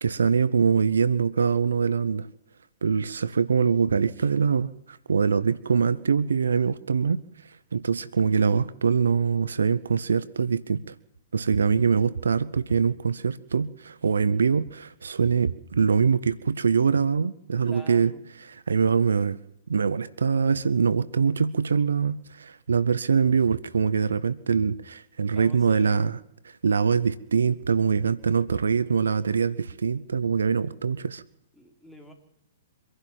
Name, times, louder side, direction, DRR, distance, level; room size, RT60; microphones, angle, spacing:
voice 1, 0.0-2.3 2.8-7.2 7.7-10.8 11.3-18.1 18.7-19.4 19.7-26.2 26.4-31.2, right 6 dB, 80° right, 18 dB, 0.9 m, -23 dB
voice 2, 17.6-18.2 25.3-26.1 28.5-29.0 31.5-32.1, right 1 dB, ahead, 1 dB, 4.1 m, -47 dB
25.0 x 11.5 x 9.2 m, 0.78 s
hypercardioid pair, 120°, 0 cm